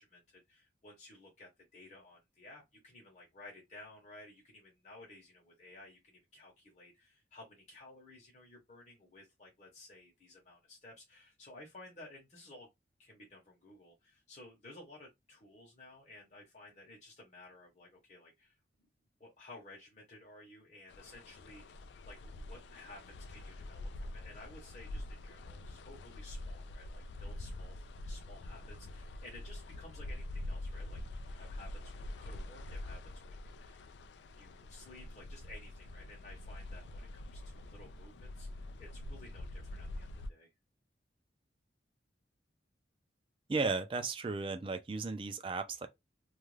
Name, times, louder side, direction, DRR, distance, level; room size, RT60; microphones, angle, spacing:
voice 1, 0.0-12.7 13.0-18.5 19.2-33.9 34.3-40.5, left 2 dB, 40° left, 0.8 m, -55 dB
sound 1, 20.9-40.3, left 1 dB, 75° left, 0.3 m, -45 dB
voice 2, 43.5-45.9, right 3 dB, 30° right, 0.4 m, -35 dB
2.4 x 2.2 x 3.1 m
head